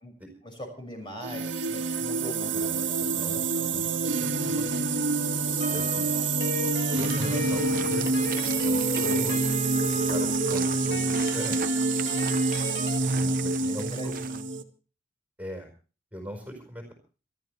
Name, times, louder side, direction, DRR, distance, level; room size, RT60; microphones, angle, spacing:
voice 1, 0.4-3.3 3.5-3.7 6.1-6.5 12.9-13.4 13.6-14.5, equal, 25° left, 4 dB, 6.1 m, -42 dB
sound 1, 1.2-14.6, right 3 dB, 80° right, 1.7 m, -27 dB
voice 2, 2.5-4.7 5.4-6.1 6.9-9.4 9.9-11.7 13.2-14.1 15.4-15.7 16.1-16.9, equal, 10° right, 3 dB, 4.7 m, -41 dB
sound 2, 5.6-13.0, left 3 dB, 60° left, 1.9 m, -36 dB
sound 3, 6.9-14.4, right 6 dB, 50° right, 0.8 m, -41 dB
27.5 x 12.0 x 3.3 m, 0.37 s
head